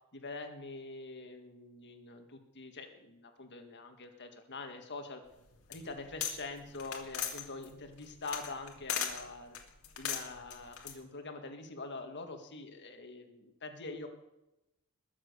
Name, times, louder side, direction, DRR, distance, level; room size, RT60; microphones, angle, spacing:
voice 1, 0.1-5.2 5.7-9.5 10.0-14.1, left 3 dB, 55° left, 6 dB, 1.9 m, -44 dB
sound 1, 5.3-6.4 6.6-9.2 9.5-10.9, left 8 dB, 75° left, 2.2 m, -37 dB
21.0 x 7.5 x 6.9 m, 0.92 s
head